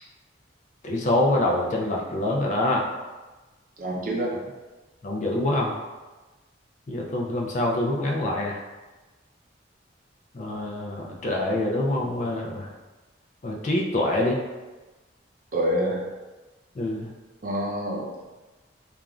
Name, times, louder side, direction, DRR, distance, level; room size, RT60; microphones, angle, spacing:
voice 1, 0.8-2.9 5.0-5.7 6.9-8.6 10.3-12.7 13.4-14.4 16.8-17.1, left 1 dB, 40° left, -1 dB, 0.3 m, -25 dB
voice 2, 3.8-4.3 15.5-16.0 17.4-18.3, right 1 dB, 45° right, -3 dB, 0.5 m, -27 dB
3.0 x 2.4 x 2.4 m, 1.2 s
head